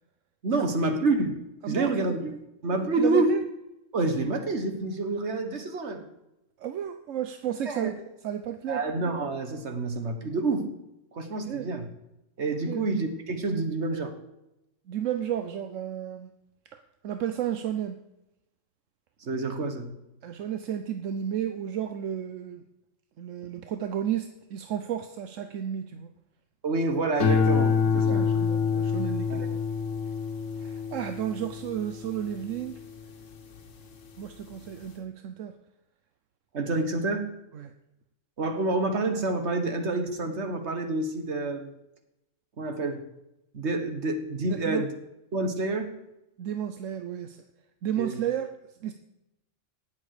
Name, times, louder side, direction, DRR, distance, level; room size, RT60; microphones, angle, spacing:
voice 1, 0.4-2.2 2.6-3.4 3.9-6.0 7.7-7.9 8.7-10.7 11.1-11.9 12.4-14.1 19.2-20.0 26.6-28.3 29.3-29.5 36.5-37.3 38.4-41.7 42.6-43.0 43.5-44.9 45.3-45.9 48.0-48.2, right 2 dB, 65° right, 6 dB, 1.8 m, -28 dB
voice 2, 1.6-2.4 3.0-3.4 6.6-8.0 8.2-8.8 11.5-11.7 12.7-12.8 14.9-16.3 16.7-18.0 20.2-22.6 23.2-26.1 28.1-29.4 30.6-32.8 34.2-35.5 37.5-37.7 44.5-44.8 46.4-47.4 47.8-48.5 48.8-48.9, right 10 dB, 80° right, 8 dB, 1.1 m, -32 dB
sound 1, 27.2-33.7 34.2-34.7, left 6 dB, 75° left, 1.5 m, -27 dB
18.0 x 7.3 x 4.9 m, 0.88 s
omnidirectional pair, 1.3 m